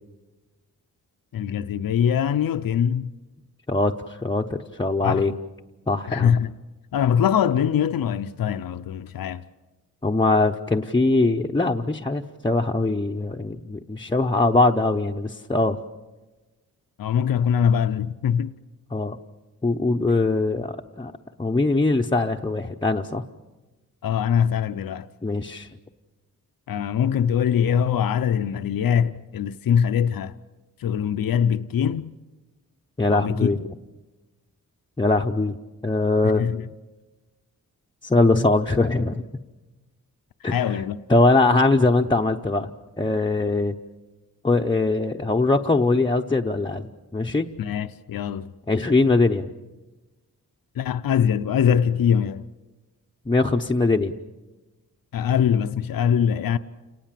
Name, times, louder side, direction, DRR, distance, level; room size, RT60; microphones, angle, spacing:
voice 1, 1.3-3.1 5.0-5.3 6.1-6.5 6.9-9.4 17.0-18.5 24.0-25.1 26.7-30.3 30.8-32.1 33.1-33.5 36.2-36.6 40.5-41.0 47.6-48.5 50.8-52.5 55.1-56.6, left 8 dB, 85° left, 0.7 m, -22 dB
voice 2, 3.7-5.3 5.9-6.4 10.0-15.8 18.9-19.2 19.6-21.1 21.4-23.2 25.2-25.7 33.0-33.6 35.0-35.6 35.8-36.4 38.0-39.2 40.4-40.8 41.1-42.7 43.0-43.7 44.4-47.5 48.7-49.5 53.3-54.1, left 2 dB, 15° left, 0.7 m, -21 dB
29.5 x 19.0 x 7.6 m
wide cardioid pair, 150°, 34 cm